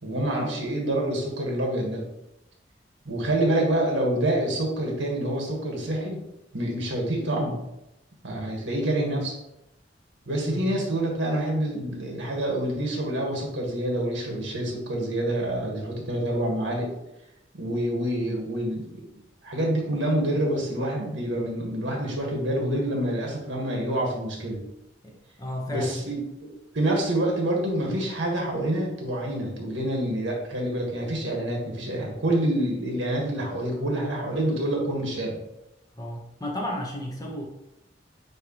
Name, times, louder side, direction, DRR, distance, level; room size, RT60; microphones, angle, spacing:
voice 1, 0.0-2.0 3.0-6.2 6.5-7.6 8.2-9.3 10.3-16.9 17.5-18.9 19.4-24.6 25.7-35.4, right 1 dB, 85° right, -1 dB, 1.7 m, -27 dB
voice 2, 25.0-26.1 35.9-37.4, left 1 dB, 20° left, -1 dB, 1.2 m, -33 dB
9.2 x 3.2 x 3.1 m, 0.87 s
head